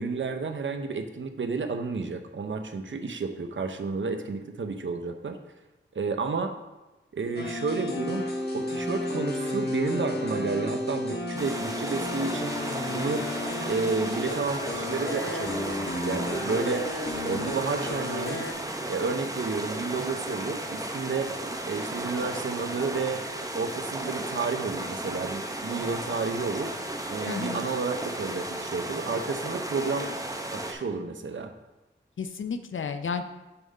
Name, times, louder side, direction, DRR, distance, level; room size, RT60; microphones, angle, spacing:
voice 1, 0.0-5.4 5.9-6.5 7.1-8.3 8.5-12.6 12.9-13.3 13.7-16.8 17.2-18.4 18.9-21.3 21.6-23.2 23.5-26.7 27.1-30.1 30.5-31.5, right 4 dB, 70° right, 7 dB, 0.7 m, -31 dB
sound 1, 7.3-18.5, left 1 dB, 55° left, 1.3 m, -32 dB
sound 2, 11.4-30.7, right 1 dB, 15° right, 0.8 m, -34 dB
voice 2, 27.3-27.6 32.2-33.2, left 6 dB, 75° left, 8 dB, 0.5 m, -32 dB
6.8 x 3.6 x 5.3 m, 1.1 s
wide cardioid pair, 60°, 20 cm